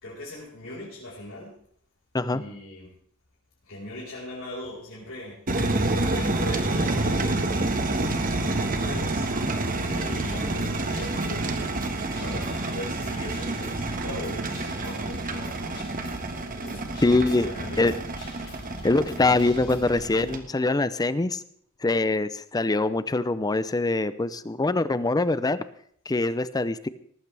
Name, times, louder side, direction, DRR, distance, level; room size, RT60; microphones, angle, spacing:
voice 1, 0.0-1.5 2.3-2.9 3.6-5.4 5.7-7.5 8.4-9.3 9.8-11.7 12.2-15.9 16.6-16.8 17.4-17.9, left 1 dB, 70° left, -7 dB, 4.8 m, -40 dB
sound 1, 5.5-20.4, right 2 dB, 40° right, 1.4 m, -28 dB
Guitar, 10.3-20.0, left 1 dB, 50° left, 6.8 m, -45 dB
voice 2, 17.0-17.5 17.8-17.9 18.8-21.4 21.8-25.6 26.1-26.9, left 2 dB, 20° left, 15 dB, 0.5 m, -23 dB
19.0 x 14.5 x 3.4 m, 0.67 s
head